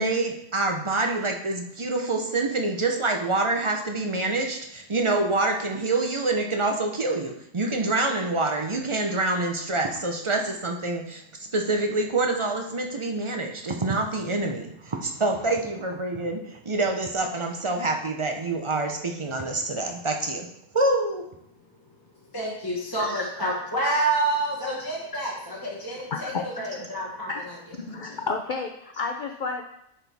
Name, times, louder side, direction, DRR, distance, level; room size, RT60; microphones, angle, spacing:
voice 1, 0.0-20.5 20.7-21.2, right 2 dB, 35° right, 3 dB, 0.5 m, -26 dB
voice 2, 22.3-27.5, right 2 dB, 15° left, -5 dB, 1.1 m, -28 dB
voice 3, 26.1-26.4 26.7-26.8 27.3-27.4 27.8-29.6, left 4 dB, 55° left, 3 dB, 0.5 m, -31 dB
9.7 x 4.4 x 3.5 m, 0.77 s
omnidirectional pair, 1.4 m